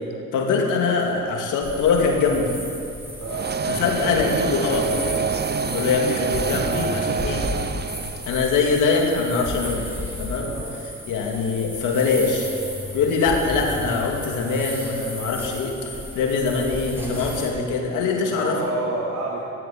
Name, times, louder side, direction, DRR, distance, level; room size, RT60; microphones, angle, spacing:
voice 1, 0.3-2.6 3.7-5.2 5.7-7.5 8.3-9.9 10.2-10.5 11.1-12.5 12.9-18.6, left 4 dB, 90° left, 1 dB, 2.5 m, -23 dB
sound 1, 1.6-17.5, left 1 dB, 10° right, 3.5 m, -34 dB
sound 2, 3.3-8.5, right 6 dB, 35° right, 0.6 m, -27 dB
voice 2, 18.2-19.5, right 2 dB, 60° right, -5 dB, 3.2 m, -29 dB
16.5 x 8.1 x 9.3 m, 2.7 s
cardioid pair, 90°, 30 cm